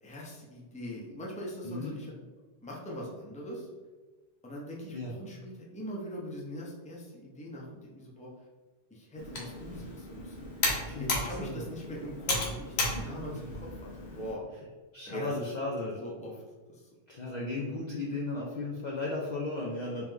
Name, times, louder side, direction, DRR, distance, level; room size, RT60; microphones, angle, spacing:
voice 1, 0.0-2.1 2.6-3.7 4.4-8.3 8.9-10.5 11.0-14.4 15.1-15.4 15.9-16.4 16.7-16.9, equal, 10° left, -4 dB, 0.6 m, -41 dB
voice 2, 1.6-2.0 4.9-5.1 10.9-11.1 11.4-11.6 12.9-13.1 14.9-16.0 17.1-20.1, left 2 dB, 55° left, -3 dB, 0.5 m, -35 dB
Computer keyboard, 9.2-14.3, left 2 dB, 70° left, 1.1 m, -34 dB
3.1 x 3.0 x 3.7 m, 1.3 s
omnidirectional pair, 1.1 m